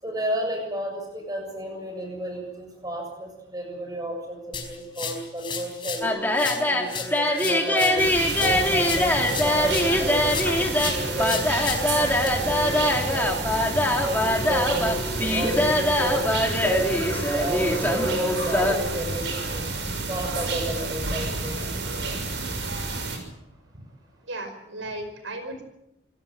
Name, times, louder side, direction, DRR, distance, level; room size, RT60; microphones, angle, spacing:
voice 1, 0.0-6.1 6.6-10.3 10.7-13.3 14.0-19.6 20.1-21.6, right 1 dB, 20° right, 3 dB, 7.3 m, -32 dB
sound 1, 4.5-6.1 6.4-10.0 10.3-12.3, left 6 dB, 25° left, 4.6 m, -34 dB
sound 2, 6.0-18.8, left 1 dB, 10° left, 3.1 m, -23 dB
sound 3, 8.0-23.2, right 3 dB, 70° right, 6.4 m, -30 dB
voice 2, 24.3-25.6, right 2 dB, 85° right, 7 dB, 5.2 m, -35 dB
27.0 x 17.0 x 7.9 m, 0.83 s
head